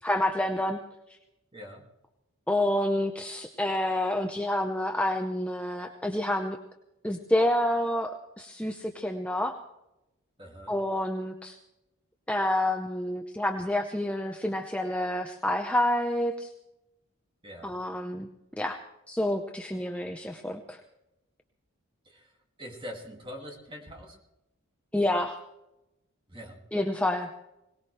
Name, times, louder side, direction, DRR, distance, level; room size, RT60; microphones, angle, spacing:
voice 1, 0.0-0.8 2.5-6.6 7.0-9.6 10.7-11.6 12.3-16.5 17.6-18.3 18.6-18.8 19.1-20.8 24.9-25.4 26.7-27.3, left 1 dB, 5° left, 3 dB, 0.7 m, -28 dB
voice 2, 1.5-1.9 10.4-10.7 17.4-17.8 22.0-22.3 22.6-24.2 26.3-26.6, equal, 20° right, 1 dB, 2.3 m, -43 dB
21.5 x 18.5 x 3.3 m, 0.90 s
head